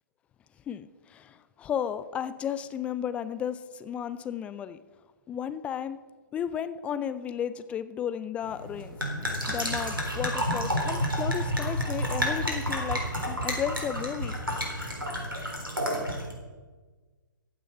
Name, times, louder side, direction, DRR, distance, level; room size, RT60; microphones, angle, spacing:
voice 1, 0.7-4.8 5.3-6.0 6.3-9.0 9.5-14.4, left 9 dB, 10° left, 14 dB, 0.3 m, -34 dB
sound 1, 8.4-16.3, equal, 85° right, 3.9 m, -30 dB
15.0 x 9.4 x 5.5 m, 1.3 s
figure-of-eight pair, 125°, 11 cm